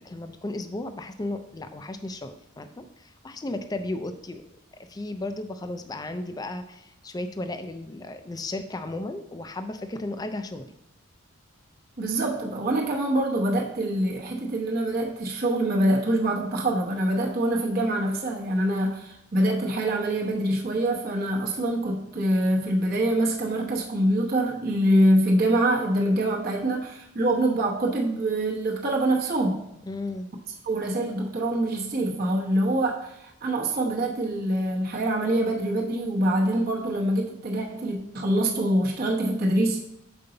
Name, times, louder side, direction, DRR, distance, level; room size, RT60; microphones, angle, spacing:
voice 1, 0.0-4.4 4.8-10.7 29.8-30.3, left 2 dB, 20° left, 8 dB, 0.4 m, -34 dB
voice 2, 12.0-29.6 30.6-39.8, right 1 dB, 45° right, -2 dB, 0.9 m, -25 dB
6.7 x 5.3 x 3.9 m, 0.82 s
head